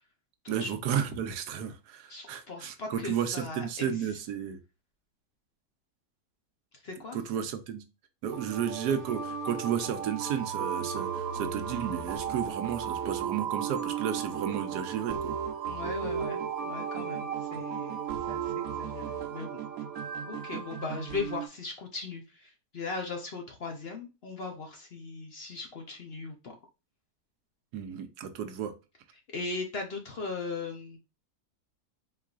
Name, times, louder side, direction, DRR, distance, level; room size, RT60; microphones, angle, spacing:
voice 1, 0.5-4.6 7.1-7.8 8.2-15.4 27.7-28.7, right 8 dB, 85° right, 1.2 m, -33 dB
voice 2, 2.1-4.1 6.8-7.2 15.7-19.6 20.3-26.5 29.3-31.0, left 3 dB, 50° left, 0.8 m, -38 dB
sound 1, 8.2-21.5, right 7 dB, 70° right, 1.1 m, -35 dB
4.5 x 4.0 x 2.4 m
omnidirectional pair, 1.7 m